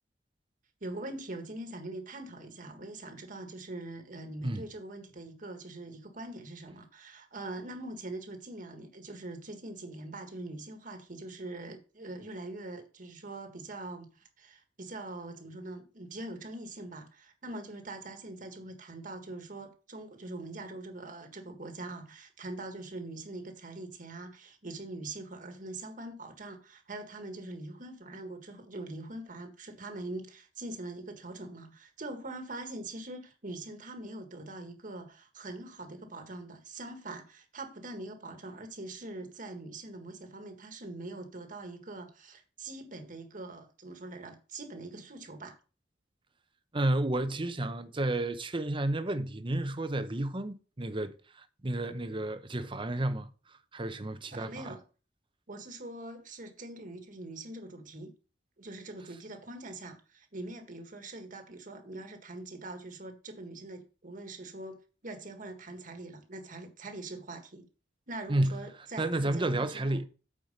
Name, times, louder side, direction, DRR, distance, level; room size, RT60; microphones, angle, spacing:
voice 1, 0.8-14.1 14.4-45.6 54.3-54.8 55.5-58.1 58.6-67.7 68.1-70.0, right 2 dB, 50° right, 1.7 m, -43 dB
voice 2, 46.7-53.3 53.7-54.7 68.3-68.6 69.0-70.1, right 1 dB, 30° right, 0.8 m, -31 dB
8.8 x 4.8 x 5.4 m
head